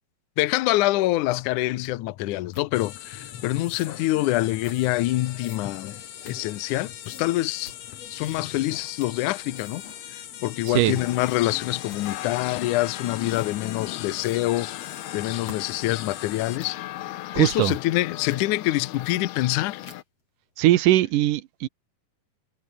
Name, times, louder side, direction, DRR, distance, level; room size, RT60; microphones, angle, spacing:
voice 1, 0.4-7.7 8.1-9.8 10.4-16.8 17.4-19.8, left 17 dB, 70° left, 2.0 m, -26 dB
sound 1, 1.8-1.9 2.5-2.7 3.6-3.9 4.6-4.9 5.4-6.8 7.0-7.3 7.6-7.8 8.2-8.6 8.9-9.3 9.5-10.0 10.6-10.8 11.2-11.6 11.9-12.3 13.3-13.5 14.1-14.4 14.8-16.8 17.3-18.0 18.3-18.5 18.9-19.5 19.8-20.2, left 3 dB, 40° left, 7.3 m, -49 dB
sound 2, 2.7-16.6, left 10 dB, 55° left, 2.0 m, -40 dB
sound 3, 10.8-20.0, left 15 dB, 90° left, 3.2 m, -37 dB
voice 2, 17.3-17.8 20.6-21.7, right 15 dB, 70° right, 2.3 m, -20 dB
omnidirectional pair, 4.4 m